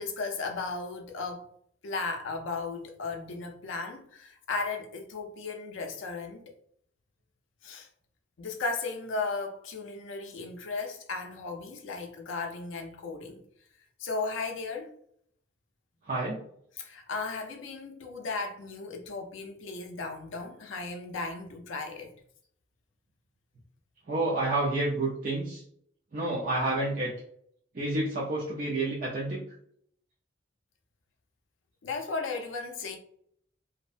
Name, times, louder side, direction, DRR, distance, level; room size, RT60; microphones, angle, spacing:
voice 1, 0.0-1.5 1.8-6.4 7.6-7.9 8.4-13.4 14.0-14.9 16.8-22.1 31.8-33.0, left 3 dB, 80° left, 0.4 m, -35 dB
voice 2, 16.1-16.4 24.1-25.6 26.1-27.1 27.7-29.4, right 2 dB, 45° right, 0.5 m, -29 dB
2.6 x 2.1 x 2.4 m
head